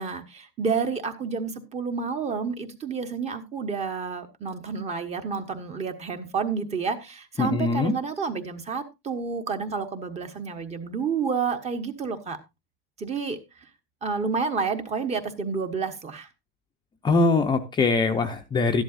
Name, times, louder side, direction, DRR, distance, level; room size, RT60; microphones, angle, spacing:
voice 1, 0.0-12.4 13.0-13.7 14.0-16.3, right 5 dB, 20° right, 8 dB, 1.2 m, -30 dB
voice 2, 7.4-7.9 17.0-18.8, left 3 dB, 15° left, 4 dB, 0.7 m, -22 dB
13.5 x 11.0 x 2.5 m, 0.23 s
supercardioid pair, 150°, 29 cm